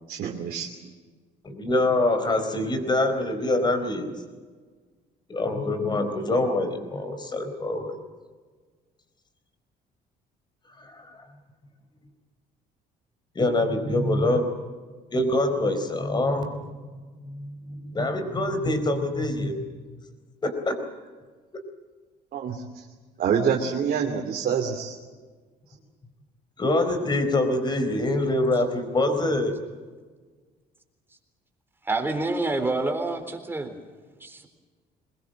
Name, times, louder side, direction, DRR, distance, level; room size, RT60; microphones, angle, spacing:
voice 1, 0.1-0.7 22.3-22.6 23.2-25.0, right 7 dB, 60° right, 1 dB, 2.8 m, -26 dB
voice 2, 1.4-4.1 5.3-8.0 10.8-11.0 13.3-14.5 15.1-16.7 17.2-19.6 20.4-20.8 26.6-29.5, left 2 dB, 25° left, 8 dB, 4.2 m, -25 dB
voice 3, 31.9-33.7 34.2-34.5, right 2 dB, 15° right, 5 dB, 3.9 m, -27 dB
23.0 x 20.5 x 7.8 m, 1.5 s
cardioid pair, 110°, 17 cm